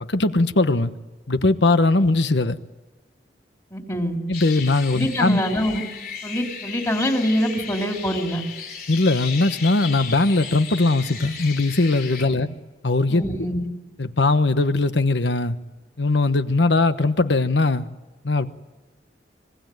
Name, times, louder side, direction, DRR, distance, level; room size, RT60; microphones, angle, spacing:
voice 1, 0.1-0.9 1.3-2.6 4.3-5.4 8.9-12.5 12.8-13.2 14.0-15.6 16.0-17.9 18.2-18.5, left 2 dB, 80° left, 1.2 m, -20 dB
voice 2, 3.7-4.2 4.9-5.8 6.2-8.4 12.3-12.4 13.1-13.7, equal, 20° left, 3.3 m, -24 dB
sound 1, 4.3-12.2, left 6 dB, 55° left, 3.7 m, -35 dB
26.0 x 20.5 x 9.2 m
head